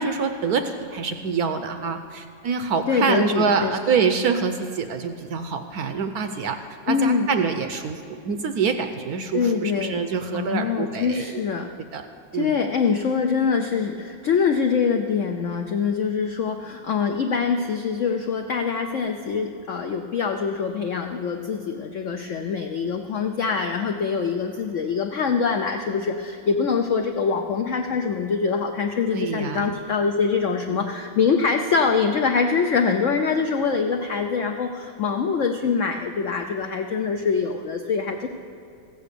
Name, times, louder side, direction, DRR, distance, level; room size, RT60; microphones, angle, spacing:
voice 1, 0.0-6.6 6.9-11.4 11.9-12.0 12.3-12.6 29.1-29.7 30.7-30.8, right 5 dB, 70° right, 7 dB, 1.0 m, -26 dB
voice 2, 2.9-3.7 6.9-7.3 9.3-10.0 10.3-11.7 12.3-38.3, left 5 dB, 75° left, 4 dB, 0.6 m, -24 dB
15.0 x 8.1 x 6.8 m, 2.5 s
omnidirectional pair, 2.1 m